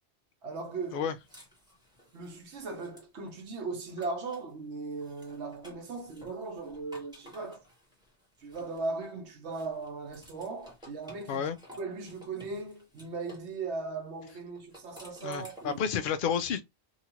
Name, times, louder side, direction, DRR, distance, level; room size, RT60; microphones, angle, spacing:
voice 1, 0.4-1.1 2.1-7.6 8.4-11.4 11.8-15.8, right 3 dB, 80° right, 1.2 m, -38 dB
sound 1, 0.8-4.5 4.9-9.1 9.5-13.5 14.5-15.9, equal, 5° right, 1.1 m, -55 dB
voice 2, 15.2-16.6, left 7 dB, 60° left, 0.6 m, -30 dB
2.9 x 2.4 x 2.9 m
omnidirectional pair, 1.1 m